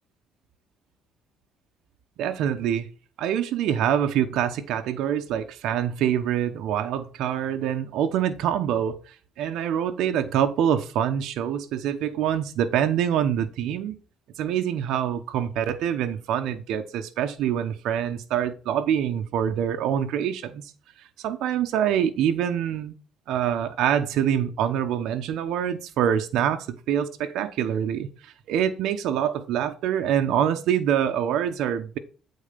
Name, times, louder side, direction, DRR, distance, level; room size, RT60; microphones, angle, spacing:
voice 1, 2.2-2.9 3.2-14.0 14.4-20.6 21.2-22.9 23.3-32.0, right 9 dB, 80° right, 0.8 m, -25 dB
8.6 x 4.1 x 5.1 m
cardioid pair, 125°, 0 cm